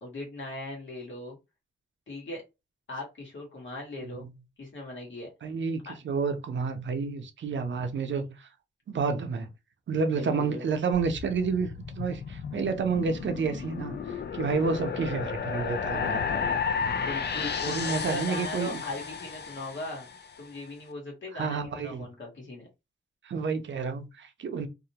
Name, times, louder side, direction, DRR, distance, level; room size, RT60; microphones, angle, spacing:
voice 1, 0.0-1.4 2.1-2.4 2.9-4.3 4.6-5.3 5.8-5.9 10.1-10.6 17.0-20.1 20.4-22.7, left 2 dB, 75° left, 1.2 m, -39 dB
voice 2, 5.4-8.5 8.9-9.5 9.9-16.4 17.7-18.8 21.3-22.1 23.2-24.7, right 5 dB, 70° right, 0.5 m, -30 dB
sound 1, 10.9-20.3, left 6 dB, 60° left, 0.4 m, -33 dB
2.4 x 2.1 x 2.8 m
wide cardioid pair, 125°, 20 cm